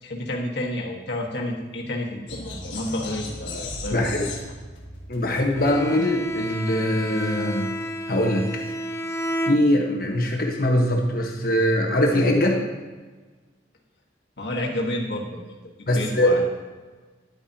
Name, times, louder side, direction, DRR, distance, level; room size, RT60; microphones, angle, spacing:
voice 1, 0.0-4.2 14.4-15.4 15.8-16.4, left 1 dB, 70° left, -1 dB, 1.7 m, -30 dB
sound 1, 2.3-6.4, left 2 dB, 85° left, 1.8 m, -37 dB
voice 2, 3.9-4.3 5.1-7.7 8.1-8.5 9.5-12.6 15.9-16.4, left 1 dB, 50° left, 1 dB, 1.4 m, -22 dB
Bowed string instrument, 5.5-10.2, right 1 dB, 15° left, 0.4 m, -31 dB
11.0 x 9.0 x 2.9 m, 1.3 s
head